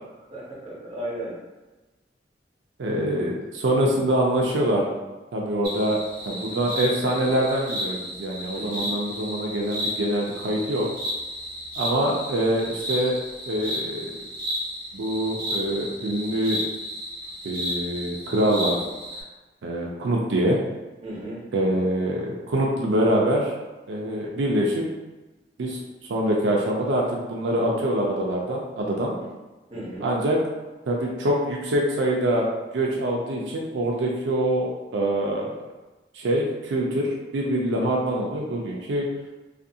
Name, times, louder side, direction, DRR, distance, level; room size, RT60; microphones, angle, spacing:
voice 1, 0.3-1.3 6.3-6.6 8.5-8.9 21.0-21.4 29.2-29.3 29.7-30.1, right 1 dB, 30° right, -8 dB, 0.9 m, -35 dB
voice 2, 2.8-4.9 5.3-6.0 6.3-10.9 11.8-13.1 13.5-14.1 14.9-16.6 17.4-18.8 19.6-20.6 21.5-23.5 23.9-24.8 25.6-25.8 26.1-29.2 30.0-30.4 30.9-32.5 32.7-35.5 36.1-39.1, right 1 dB, 85° right, -2 dB, 0.4 m, -24 dB
sound 1, 5.6-19.2, equal, 70° right, 0.8 m, -33 dB
2.6 x 2.5 x 2.7 m, 1.1 s
head